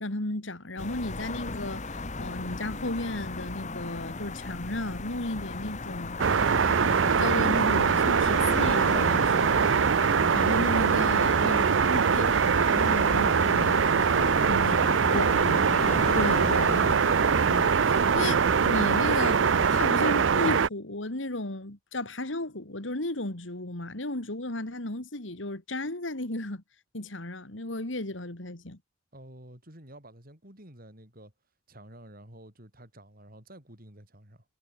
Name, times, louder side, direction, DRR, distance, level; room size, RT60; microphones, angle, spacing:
voice 1, 0.0-6.2 7.2-9.9 10.3-13.9 14.5-14.7 15.1-15.6 16.1-17.0 17.5-26.6 26.9-28.8, left 1 dB, 90° left, 3.0 m, -34 dB
sound 1, 0.8-19.9, left 3 dB, 40° left, 1.5 m, -37 dB
sound 2, 6.2-20.7, right 6 dB, 85° right, 0.6 m, -23 dB
voice 2, 29.1-31.3 31.7-34.4, right 1 dB, 50° right, 7.9 m, -48 dB
head